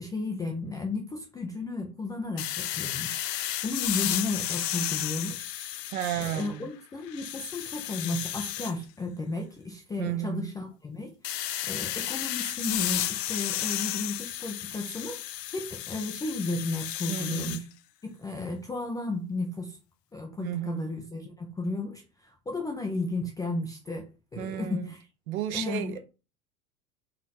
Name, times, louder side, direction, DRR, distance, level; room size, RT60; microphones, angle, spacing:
voice 1, 0.0-5.5 6.2-11.1 11.7-15.2 15.5-17.6 18.0-19.8 20.1-25.0 25.5-26.0, left 3 dB, 10° left, 0.4 m, -34 dB
sound 1, 2.4-6.7 7.1-8.7 11.2-17.6, left 12 dB, 80° left, 0.5 m, -33 dB
voice 2, 5.9-6.6 10.0-10.5 17.1-17.6 20.4-20.8 24.4-24.9 25.3-26.0, right 12 dB, 60° right, 0.9 m, -32 dB
4.2 x 3.1 x 4.1 m
figure-of-eight pair, 85°, 49 cm